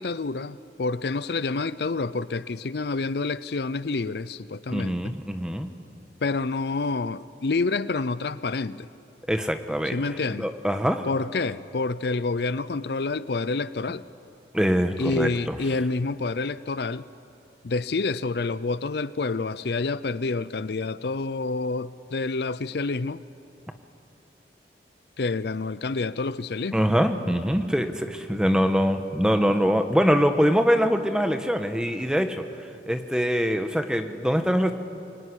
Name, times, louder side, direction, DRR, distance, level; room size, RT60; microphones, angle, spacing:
voice 1, 0.0-5.0 6.2-8.9 9.9-10.5 11.0-14.1 15.0-17.0 17.6-23.2 25.2-26.9, left 3 dB, 65° left, 0.6 m, -28 dB
voice 2, 4.7-5.7 9.3-10.0 10.3-11.0 14.5-15.6 26.7-32.4 32.9-34.7, equal, 5° right, 1.2 m, -23 dB
24.5 x 21.5 x 9.9 m
head